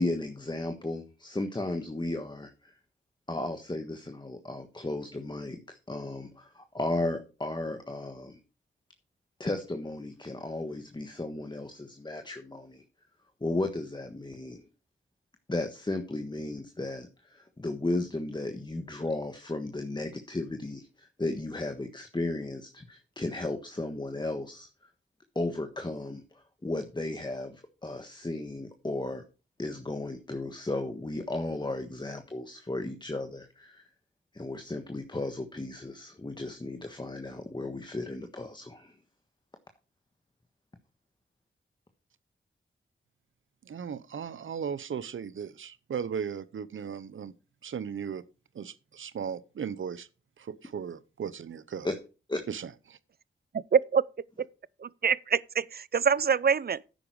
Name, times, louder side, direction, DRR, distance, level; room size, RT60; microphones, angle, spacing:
voice 1, 0.0-2.7 3.3-8.4 9.4-12.8 13.4-14.6 15.5-24.9 25.3-29.2 29.6-33.8 34.3-39.0 51.8-52.0 52.3-52.4, left 2 dB, 20° left, 1.4 m, -35 dB
voice 2, 43.6-47.3 47.6-48.2 48.5-50.1 50.4-51.9 52.5-53.0, right 7 dB, 75° right, 0.8 m, -37 dB
voice 3, 53.5-54.0 54.8-56.8, right 6 dB, 50° right, 0.5 m, -25 dB
10.5 x 8.7 x 4.8 m
cardioid pair, 60°, 21 cm